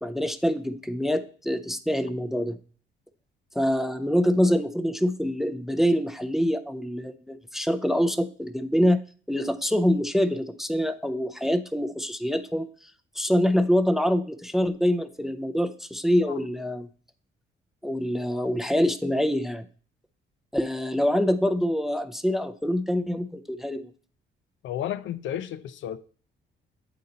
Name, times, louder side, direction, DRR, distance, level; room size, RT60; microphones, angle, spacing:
voice 1, 0.0-2.6 3.6-9.0 9.3-12.7 13.2-16.9 17.8-19.6 20.5-23.9, equal, ahead, 0.4 m, -25 dB
voice 2, 24.6-26.0, left 10 dB, 75° left, 0.5 m, -32 dB
8.3 x 4.0 x 3.9 m
cardioid pair, 90°, 20 cm